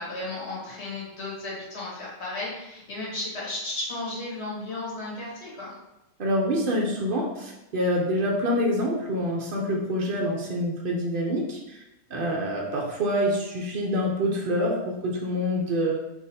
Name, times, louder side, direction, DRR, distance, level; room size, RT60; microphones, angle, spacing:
voice 1, 0.0-5.7, left 2 dB, 45° left, -5 dB, 1.4 m, -34 dB
voice 2, 6.2-11.8 12.1-15.9, equal, 75° right, -2 dB, 0.4 m, -26 dB
3.5 x 3.0 x 4.1 m, 0.93 s
omnidirectional pair, 1.8 m